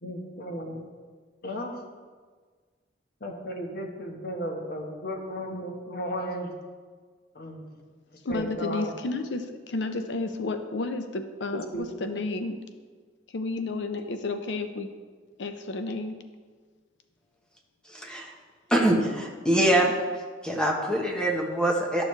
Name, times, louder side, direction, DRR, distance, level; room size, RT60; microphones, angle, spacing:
voice 1, 0.0-0.8 1.4-1.8 3.2-6.5 7.3-7.7 8.3-8.9 11.7-11.9, equal, 55° left, 2 dB, 1.2 m, -34 dB
voice 2, 8.2-12.6 13.3-14.9 15.4-16.2, left 3 dB, 70° left, 8 dB, 0.5 m, -31 dB
voice 3, 17.9-18.3 18.7-19.9 20.4-22.1, right 1 dB, 5° left, 0 dB, 1.0 m, -24 dB
12.0 x 6.6 x 3.2 m, 1.5 s
head